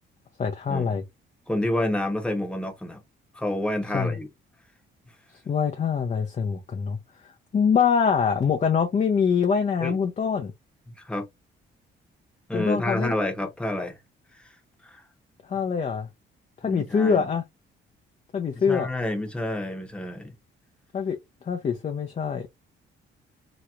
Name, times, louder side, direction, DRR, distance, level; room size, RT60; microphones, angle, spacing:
voice 1, 0.4-1.0 3.9-4.1 5.5-7.0 7.5-10.5 12.5-13.1 15.5-16.1 16.6-17.4 18.3-18.9 20.9-21.2 21.4-22.5, left 6 dB, 35° left, 0.6 m, -24 dB
voice 2, 1.5-3.0 3.3-4.3 9.8-9.9 11.0-11.3 12.5-13.9 14.8-15.0 16.6-17.2 18.7-20.3, left 1 dB, 5° left, 1.0 m, -28 dB
3.1 x 3.0 x 2.4 m
cardioid pair, 90°, 20 cm